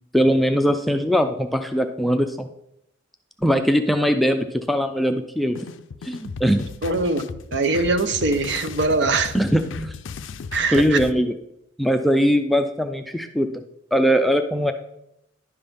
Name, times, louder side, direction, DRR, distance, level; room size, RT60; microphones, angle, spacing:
voice 1, 0.1-2.5 3.4-5.6 6.0-6.7 9.3-9.9 10.7-11.4 11.8-13.6 13.9-14.7, equal, ahead, 6 dB, 0.3 m, -21 dB
sound 1, 5.5-11.1, left 5 dB, 75° left, 0.4 m, -35 dB
voice 2, 6.8-9.3 10.5-11.0, right 3 dB, 65° right, 9 dB, 0.7 m, -22 dB
10.5 x 5.6 x 3.4 m, 0.79 s
head